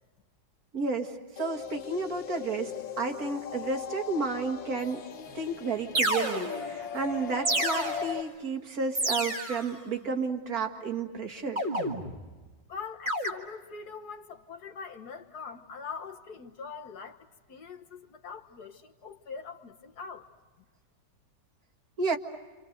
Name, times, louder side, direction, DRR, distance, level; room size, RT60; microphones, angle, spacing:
voice 1, 0.7-5.0 5.3-11.6 22.0-22.2, right 4 dB, 50° right, 2.2 m, -32 dB
sound 1, 1.4-8.2, left 7 dB, 80° left, 1.9 m, -39 dB
sound 2, 5.3-5.4 5.9-6.8 7.4-8.3 8.9-9.7 11.6-12.3 13.1-13.3, right 1 dB, 25° right, 2.1 m, -30 dB
voice 2, 12.7-20.3, left 5 dB, 60° left, 1.8 m, -43 dB
28.5 x 28.0 x 6.6 m
omnidirectional pair, 2.0 m